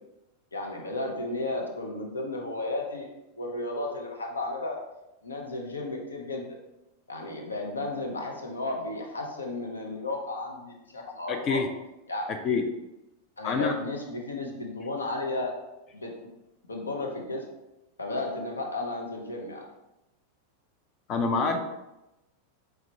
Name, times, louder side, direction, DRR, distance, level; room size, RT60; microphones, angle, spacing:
voice 1, 0.5-3.1 3.4-4.8 5.2-6.5 7.1-11.6 12.1-12.3 13.4-15.5 15.9-16.1 16.7-17.5 18.0-19.7, left 2 dB, 75° left, 2 dB, 0.7 m, -33 dB
voice 2, 11.3-11.7 12.4-12.7 13.4-13.8 21.1-21.6, left 4 dB, 30° left, 6 dB, 0.4 m, -26 dB
4.8 x 3.2 x 2.7 m, 0.95 s
figure-of-eight pair, 90°, 0 cm